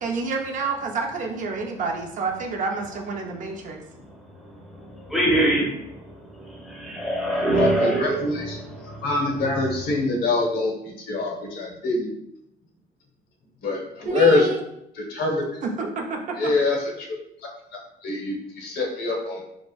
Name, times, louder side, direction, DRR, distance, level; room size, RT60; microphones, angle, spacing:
voice 1, 0.0-3.8 14.1-14.6 15.6-16.5, right 4 dB, 50° right, 2 dB, 0.4 m, -28 dB
voice 2, 5.1-6.0 6.7-9.0, right 1 dB, ahead, -2 dB, 0.7 m, -23 dB
voice 3, 7.3-8.6 9.0-12.1 13.6-14.5 15.0-15.4 16.4-17.1 18.0-19.4, left 3 dB, 65° left, 0 dB, 0.8 m, -24 dB
2.8 x 2.4 x 2.3 m, 0.79 s
cardioid pair, 110°, 17 cm